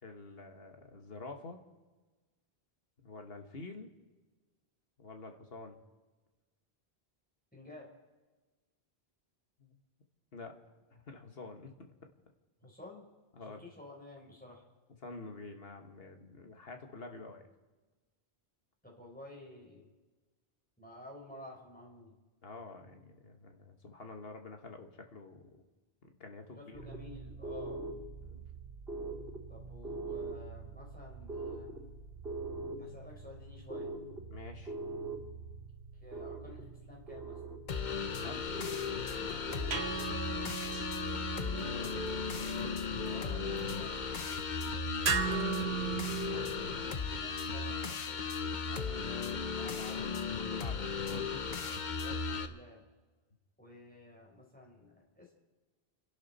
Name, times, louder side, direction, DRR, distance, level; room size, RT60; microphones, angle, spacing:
voice 1, 0.0-1.6 3.0-3.9 5.0-5.8 9.6-9.8 10.3-10.6 10.9-12.1 13.3-13.7 15.0-17.4 22.4-25.5 26.0-26.8 28.2-28.4 34.3-34.7 38.0-38.5 41.2-42.0 48.6-49.6 50.4-51.6, left 3 dB, 70° left, 4 dB, 1.8 m, -48 dB
voice 2, 7.5-7.9 12.6-13.0 13.4-14.6 18.8-19.9 20.8-22.2 26.6-27.8 29.5-31.7 32.8-33.9 36.0-37.4 40.3-40.8 43.0-44.2 45.1-45.9 46.1-48.3 49.6-50.1 52.0-52.8 53.6-55.3, left 2 dB, 10° left, -2 dB, 4.3 m, -52 dB
sound 1, 26.7-40.1, right 3 dB, 70° right, 3.7 m, -43 dB
sound 2, 37.7-52.5, left 5 dB, 50° left, 1.0 m, -36 dB
sound 3, 38.9-46.9, right 6 dB, 85° right, 1.7 m, -38 dB
29.5 x 11.5 x 4.2 m, 1.3 s
omnidirectional pair, 1.0 m